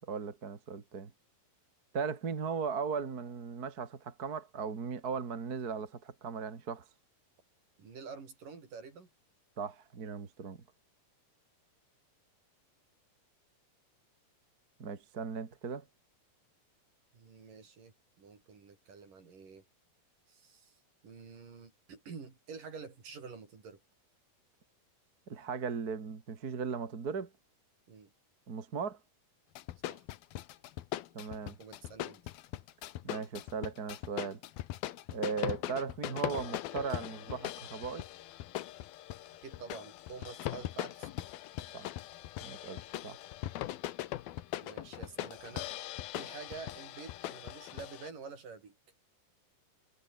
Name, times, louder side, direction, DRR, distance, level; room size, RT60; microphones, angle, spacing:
voice 1, 0.1-1.1 1.9-6.8 9.6-10.6 14.8-15.8 25.3-27.3 28.5-29.0 31.1-31.6 33.0-34.4 35.1-38.0 41.7-41.9 42.4-43.2, right 5 dB, 30° right, 2.1 m, -37 dB
voice 2, 7.8-9.1 17.1-19.6 20.3-20.8 21.0-23.8 27.9-28.1 29.8-30.1 31.6-32.2 39.4-41.1 44.6-45.7 46.1-48.7, right 5 dB, 60° right, 6.4 m, -48 dB
sound 1, 29.6-48.1, left 14 dB, 85° left, 3.0 m, -40 dB
omnidirectional pair, 4.2 m